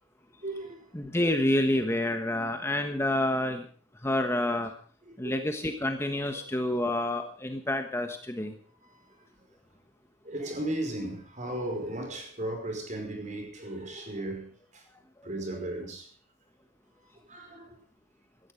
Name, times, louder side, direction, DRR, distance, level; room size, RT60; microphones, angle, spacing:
voice 1, 0.4-0.9 4.3-4.4 5.1-5.4 6.1-6.4 8.8-9.3 10.2-14.8 15.2-16.1 17.0-17.8, right 1 dB, 40° right, 5.2 m, -36 dB
voice 2, 0.9-3.6 4.0-4.7 5.2-8.5, left 1 dB, 15° left, 1.3 m, -28 dB
17.0 x 13.5 x 5.2 m
head